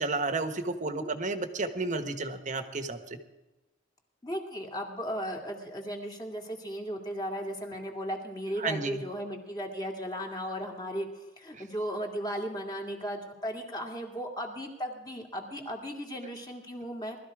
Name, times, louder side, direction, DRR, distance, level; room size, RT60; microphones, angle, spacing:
voice 1, 0.0-3.2 8.6-9.0 11.5-11.6, right 3 dB, 40° right, 8 dB, 1.2 m, -32 dB
voice 2, 4.2-17.2, equal, 20° left, 1 dB, 2.3 m, -36 dB
19.5 x 13.0 x 4.9 m, 1.0 s
head